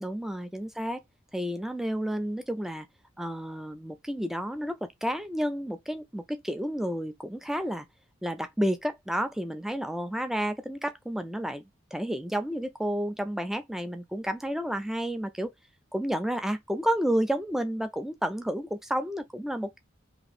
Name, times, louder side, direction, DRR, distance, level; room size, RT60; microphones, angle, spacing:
voice 1, 0.0-1.0 1.3-2.9 3.2-7.9 8.2-11.6 11.9-15.5 15.9-19.8, equal, ahead, 0.3 m, -31 dB
2.9 x 2.6 x 3.8 m
head